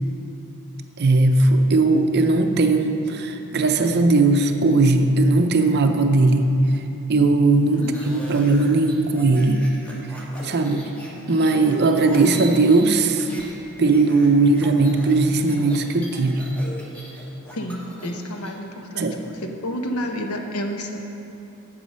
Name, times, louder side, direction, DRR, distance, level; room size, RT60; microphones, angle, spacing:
voice 1, 1.0-6.5 7.1-9.6 10.4-10.8 11.3-13.3 13.8-16.4 19.0-19.2, right 3 dB, 50° right, 6 dB, 0.6 m, -18 dB
sound 1, 7.7-13.5 13.8-18.5, equal, 5° left, 1.2 m, -40 dB
voice 2, 17.5-21.0, equal, 85° left, 3 dB, 0.9 m, -30 dB
8.2 x 7.4 x 5.5 m, 3.0 s
head